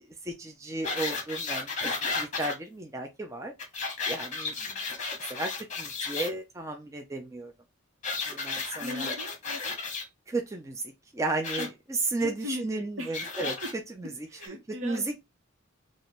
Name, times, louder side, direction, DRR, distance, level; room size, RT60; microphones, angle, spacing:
voice 1, 0.0-1.7 2.1-3.5 4.1-4.5 5.3-7.5 8.3-9.1 10.3-10.8 11.1-13.5 14.0-14.6 14.8-15.1, right 2 dB, 15° right, 0.5 m, -34 dB
sound 1, 0.8-2.5 3.6-6.3 8.0-10.0 11.4-11.7 13.1-13.7 14.4-14.5, left 4 dB, 35° left, 1.0 m, -33 dB
voice 2, 8.8-9.8 11.6-11.7 12.2-13.3 13.6-13.7 14.3-15.1, left 1 dB, 70° right, 1.1 m, -39 dB
3.3 x 2.5 x 4.1 m
head